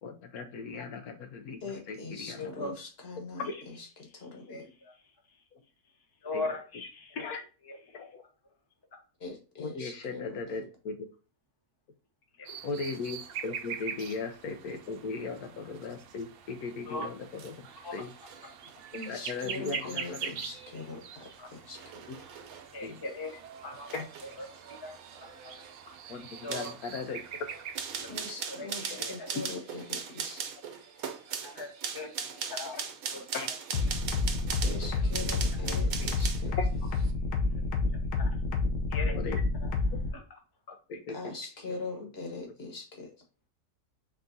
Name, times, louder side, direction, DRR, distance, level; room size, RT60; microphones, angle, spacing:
voice 1, 0.0-2.8 3.4-3.6 4.7-4.8 5.5-5.6 6.3-6.5 7.1-7.4 7.9-8.2 9.6-11.1 12.6-18.1 18.9-20.3 22.1-22.2 22.8-23.0 23.9-24.4 26.1-27.2 28.9-29.2 32.7-32.8 33.1-33.5 34.9-35.3 36.6-36.9 39.1-39.4 39.9-40.0 40.9-41.3 41.7-42.1, left 4 dB, 75° left, 6 dB, 1.1 m, -38 dB
voice 2, 1.6-3.4 4.1-4.7 9.2-10.4 18.9-22.0 28.1-30.4 34.6-36.5 38.4-38.5 41.1-43.1, left 3 dB, 45° left, 2 dB, 1.3 m, -42 dB
voice 3, 2.4-2.7 4.5-4.6 6.2-7.2 12.4-12.5 16.9-17.1 17.8-17.9 21.4-21.5 22.7-23.3 23.6-23.9 24.7-25.0 25.4-25.5 26.4-26.7 28.6-29.1 31.4-31.7 31.9-32.1 32.5-32.7 35.6-35.7 38.2-38.3 38.9-39.2, left 2 dB, 20° left, 1 dB, 0.8 m, -38 dB
sound 1, 12.4-28.3, right 7 dB, 90° right, 0.5 m, -44 dB
sound 2, 17.2-36.5 36.9-37.1, right 7 dB, 70° right, 1.1 m, -40 dB
sound 3, 33.7-40.1, left 3 dB, 90° left, 1.4 m, -28 dB
4.6 x 3.7 x 2.6 m, 0.36 s
omnidirectional pair, 1.6 m